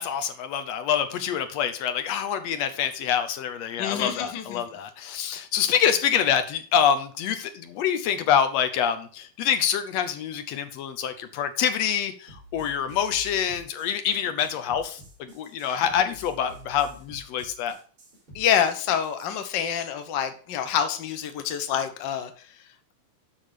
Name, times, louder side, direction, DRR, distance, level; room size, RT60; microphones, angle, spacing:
voice 1, 0.0-17.8, left 8 dB, 70° left, 9 dB, 1.7 m, -26 dB
voice 2, 3.8-4.6 15.6-15.8 18.3-22.3, left 8 dB, 85° left, 8 dB, 1.0 m, -27 dB
sound 1, 12.3-19.4, left 1 dB, 40° right, 5.2 m, -48 dB
8.4 x 5.8 x 4.9 m, 0.42 s
omnidirectional pair, 3.6 m